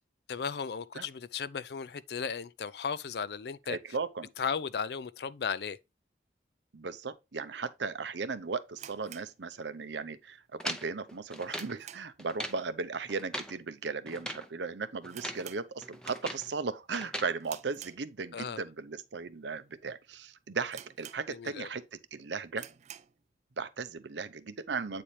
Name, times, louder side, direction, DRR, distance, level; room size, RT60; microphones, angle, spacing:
voice 1, 0.3-3.8 4.4-5.8 18.3-18.6 21.3-21.7, left 6 dB, 60° left, 0.4 m, -35 dB
voice 2, 3.7-4.3 6.7-22.7 23.6-25.0, right 4 dB, 75° right, 0.7 m, -37 dB
sound 1, 8.7-10.1 10.4-10.5 11.0-12.3 12.6-12.9 13.2-13.3 14.0-14.3 14.5-14.6 15.0-16.2 16.6-16.9 17.4-18.5 19.1-19.2 19.8-19.9 20.1-20.2 20.7-21.7 22.0-22.1 22.5-23.2, right 10 dB, 35° right, 0.4 m, -50 dB
sound 2, 10.6-11.8 12.2-12.6 13.1-13.6 14.1-14.5 15.0-15.5 15.8-16.5 16.9-17.3, equal, 5° left, 0.6 m, -39 dB
8.6 x 4.3 x 3.2 m
head